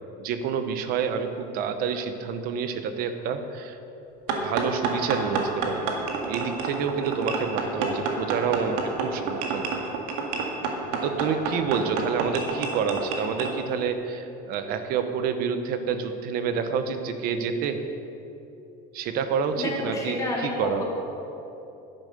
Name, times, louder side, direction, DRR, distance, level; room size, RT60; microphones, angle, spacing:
voice 1, 0.2-3.8 4.4-5.9 6.3-9.9 11.0-17.8 18.9-20.8, right 6 dB, 45° right, 8 dB, 0.9 m, -28 dB
sound 1, 4.3-13.5, right 4 dB, 70° right, 1.8 m, -29 dB
voice 2, 19.6-20.8, left 2 dB, 15° left, -3 dB, 2.3 m, -30 dB
10.5 x 10.5 x 6.7 m, 2.9 s
cardioid pair, 170°, 21 cm